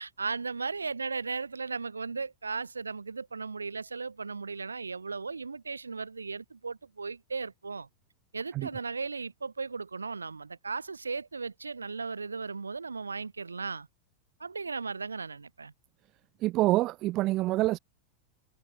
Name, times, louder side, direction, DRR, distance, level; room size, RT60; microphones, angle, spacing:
voice 1, 0.0-7.9 8.3-13.9 14.4-15.7, right 4 dB, 75° right, 1.7 m, -36 dB
voice 2, 16.4-17.8, right 17 dB, 35° right, 1.7 m, -26 dB
figure-of-eight pair, 90°, 0 cm